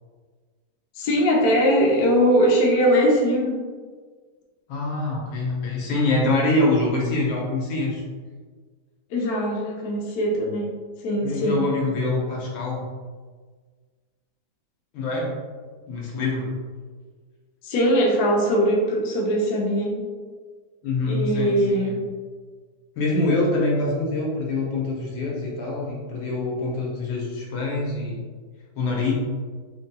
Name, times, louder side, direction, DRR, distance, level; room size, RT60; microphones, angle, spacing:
voice 1, 1.0-3.6 9.1-10.7 11.0-11.6 17.6-20.0 21.1-21.9, equal, 60° left, -2 dB, 1.1 m, -21 dB
voice 2, 4.7-8.0 11.2-12.8 14.9-15.3 15.9-16.5 20.8-22.0 23.0-28.3 28.8-29.1, left 2 dB, 85° left, -3 dB, 1.7 m, -25 dB
4.1 x 3.5 x 2.2 m, 1.5 s
omnidirectional pair, 2.1 m